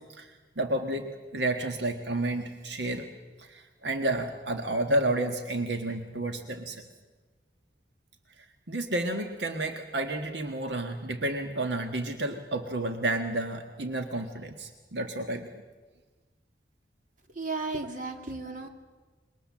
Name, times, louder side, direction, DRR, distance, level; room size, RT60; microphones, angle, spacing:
voice 1, 0.0-3.1 3.4-6.8 8.7-15.6, right 1 dB, 75° right, 6 dB, 1.5 m, -31 dB
voice 2, 17.3-18.7, right 3 dB, 50° right, 5 dB, 2.5 m, -34 dB
27.0 x 23.0 x 7.4 m, 1.3 s
head